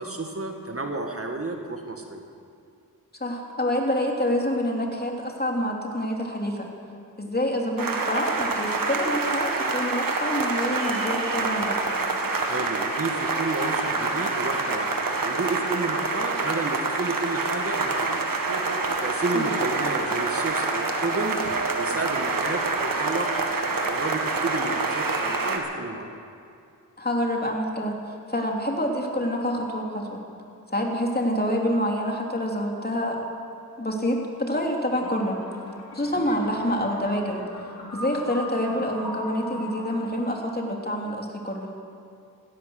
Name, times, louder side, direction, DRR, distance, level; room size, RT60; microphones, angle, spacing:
voice 1, 0.0-2.2 12.4-18.2 19.0-21.4 21.8-23.5 23.8-26.1 36.1-36.4, right 3 dB, 40° right, 3 dB, 1.7 m, -31 dB
voice 2, 3.2-6.7 7.2-12.0 19.3-19.5 27.0-30.2 30.7-33.2 33.8-35.4 35.9-37.4 37.9-41.7, equal, 25° left, 0 dB, 3.0 m, -27 dB
sound 1, 7.8-25.6, right 3 dB, 65° right, 1.8 m, -27 dB
sound 2, 34.9-40.0, left 1 dB, 70° left, 3.3 m, -38 dB
16.0 x 13.0 x 6.4 m, 2.4 s
cardioid pair, 45°, 36 cm